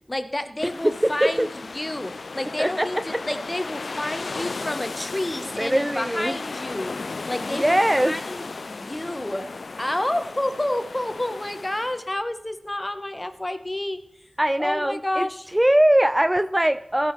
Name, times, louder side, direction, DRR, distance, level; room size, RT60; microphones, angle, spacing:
voice 1, 0.1-1.5 1.7-6.9 7.3-14.0 14.6-15.5, left 1 dB, 25° left, 9 dB, 0.9 m, -29 dB
sound 1, 0.6-12.1, left 3 dB, 80° left, 0.3 m, -35 dB
voice 2, 0.8-1.5 2.6-3.0 5.4-6.4 7.5-8.2 14.4-17.1, right 1 dB, 15° right, 12 dB, 0.3 m, -21 dB
15.0 x 5.9 x 4.5 m, 0.83 s
wide cardioid pair, 60°, 0 cm